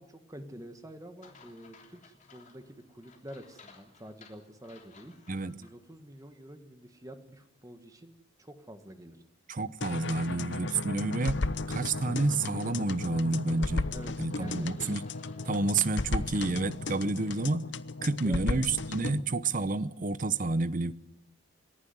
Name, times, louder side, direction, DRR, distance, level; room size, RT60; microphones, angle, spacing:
voice 1, 0.0-5.1 5.6-8.1 8.4-9.2 13.9-14.7 18.2-18.4, equal, 15° right, 1.6 m, -48 dB
sound 1, 1.2-5.7 6.2-6.3 11.2-17.6, left 4 dB, 35° left, 3.5 m, -58 dB
voice 2, 5.3-5.7 9.5-13.9 14.2-15.0 15.5-17.7 18.0-20.9, right 3 dB, 40° right, 0.7 m, -29 dB
sound 2, 9.8-19.2, left 3 dB, 60° left, 0.8 m, -35 dB
28.5 x 11.0 x 9.4 m
head